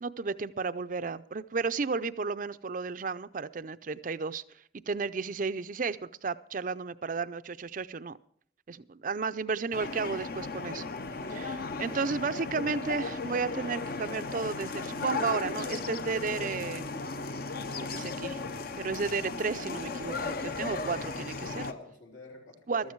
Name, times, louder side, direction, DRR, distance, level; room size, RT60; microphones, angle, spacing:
voice 1, 0.0-4.4 4.9-8.2 8.7-10.8 11.3-16.9 17.7-18.4 18.8-21.7 22.7-22.9, right 4 dB, 45° right, 14 dB, 0.5 m, -33 dB
sound 1, 9.7-21.7, left 3 dB, 50° left, 0.7 m, -36 dB
voice 2, 20.6-22.9, left 2 dB, 85° left, -1 dB, 3.8 m, -48 dB
14.5 x 13.0 x 4.6 m, 0.63 s
head